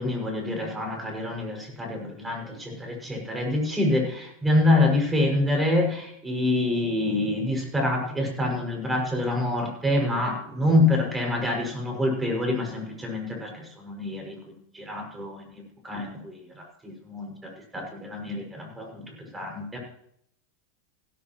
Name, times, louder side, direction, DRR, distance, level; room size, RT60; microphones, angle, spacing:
voice 1, 0.0-14.4 14.7-15.4 15.8-19.0 19.3-19.8, left 2 dB, 15° right, 1 dB, 6.1 m, -26 dB
16.5 x 14.0 x 3.1 m, 0.70 s
hypercardioid pair, 105°, 0 cm